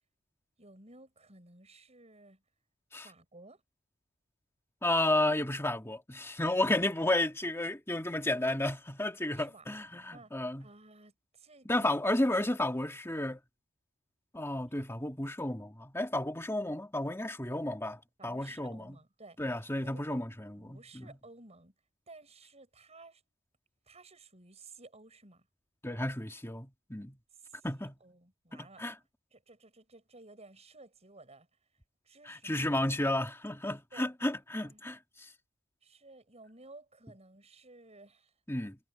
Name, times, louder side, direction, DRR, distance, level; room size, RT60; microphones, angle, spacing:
voice 1, 0.6-2.4 3.0-3.6 9.2-9.7 10.1-10.4 10.6-12.0 17.8-17.9 18.2-20.2 20.6-21.7 22.1-23.2 23.9-25.5 27.4-28.9 29.3-31.5 32.0-32.8 33.9-34.1 34.6-34.8 35.8-38.3, right 2 dB, 30° right, 7.1 m, -55 dB
voice 2, 4.8-10.7 11.7-13.4 14.3-18.0 18.2-19.0 19.4-21.1 25.8-27.2 27.6-27.9 28.5-28.9 32.3-35.3 38.5-38.8, left 1 dB, 10° left, 2.0 m, -32 dB
head